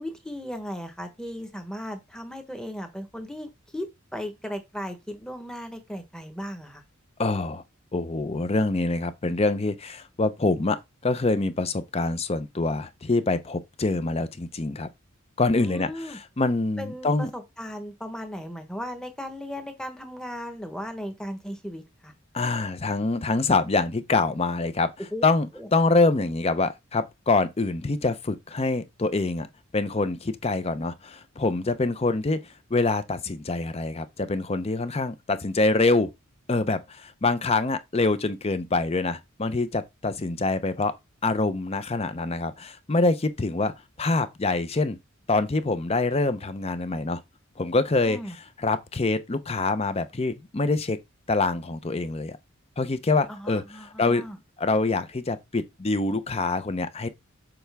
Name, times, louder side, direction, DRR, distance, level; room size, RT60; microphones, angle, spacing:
voice 1, 0.0-6.8 15.5-16.2 16.8-22.1 25.1-25.2 25.5-25.7 48.0-48.4 53.3-54.4, equal, 5° left, 1.1 m, -36 dB
voice 2, 7.2-7.6 7.9-14.9 15.4-17.3 22.3-24.9 25.2-29.5 29.7-32.4 32.7-36.1 36.5-41.0 41.2-43.7 44.0-45.0 45.3-47.2 47.6-51.0 51.3-52.4 52.8-54.2 54.6-57.1, left 3 dB, 30° left, 0.6 m, -25 dB
7.0 x 4.4 x 3.4 m
head